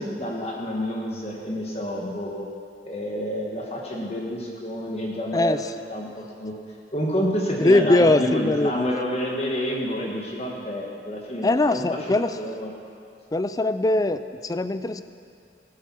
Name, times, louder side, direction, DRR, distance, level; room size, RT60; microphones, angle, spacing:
voice 1, 0.0-2.5 2.8-5.6 5.9-6.5 6.9-12.0 12.4-12.7, equal, 35° left, -2 dB, 1.4 m, -29 dB
voice 2, 7.6-8.9 11.4-12.3 13.3-15.0, left 2 dB, 20° left, 11 dB, 0.4 m, -21 dB
18.0 x 9.6 x 6.1 m, 2.4 s
head